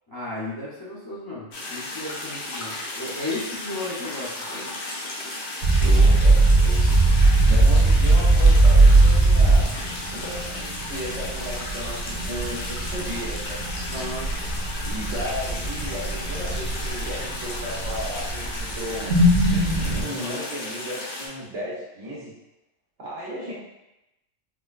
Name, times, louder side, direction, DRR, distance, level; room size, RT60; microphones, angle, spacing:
voice 1, 0.1-4.7 9.9-10.2 13.9-14.3, left 2 dB, 25° left, -7 dB, 0.6 m, -34 dB
sound 1, 1.5-21.3, left 2 dB, 70° left, 1.0 m, -34 dB
sound 2, 5.6-20.0, right 2 dB, 55° right, 0.8 m, -20 dB
voice 2, 5.6-9.7 10.1-13.6 14.8-19.1 19.5-22.3 23.0-23.5, equal, 85° right, -7 dB, 1.4 m, -35 dB
4.7 x 2.2 x 2.4 m, 0.91 s
omnidirectional pair, 1.2 m